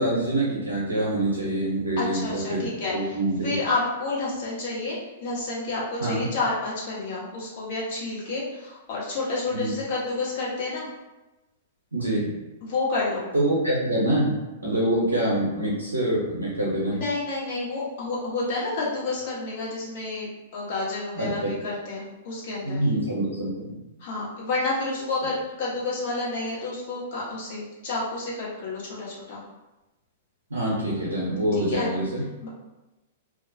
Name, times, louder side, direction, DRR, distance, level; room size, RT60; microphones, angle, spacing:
voice 1, 0.0-3.6 6.0-6.3 9.5-9.7 11.9-12.3 13.3-17.0 21.1-21.5 22.6-23.8 30.5-32.2, right 1 dB, 85° right, -6 dB, 0.6 m, -25 dB
voice 2, 2.0-10.9 12.6-13.3 16.9-22.8 24.0-29.5 31.7-31.9 32.4-32.5, left 3 dB, 55° left, -6 dB, 1.0 m, -30 dB
2.3 x 2.1 x 2.6 m, 1.0 s
hypercardioid pair, 110°, 0 cm